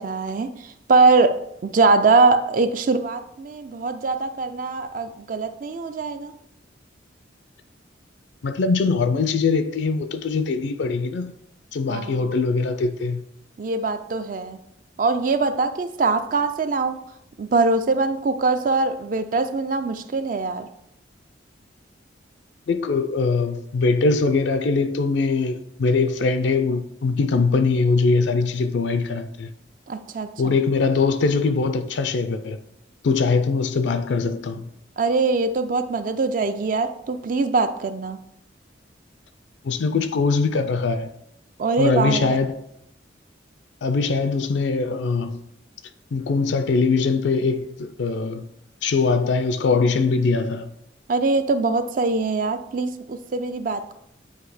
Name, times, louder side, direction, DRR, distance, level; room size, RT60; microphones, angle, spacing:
voice 1, 0.0-6.3 11.9-12.3 13.6-14.6 15.0-17.0 17.4-20.7 29.9-30.6 35.0-38.2 41.6-42.4 51.1-53.9, right 3 dB, 45° right, 0.4 m, -22 dB
voice 2, 8.4-11.3 11.7-13.2 22.7-29.5 30.4-32.6 33.0-34.6 39.6-41.1 41.8-42.6 43.8-45.4 46.1-48.5 48.8-50.7, left 4 dB, 70° left, 0.4 m, -22 dB
8.1 x 2.8 x 4.8 m
head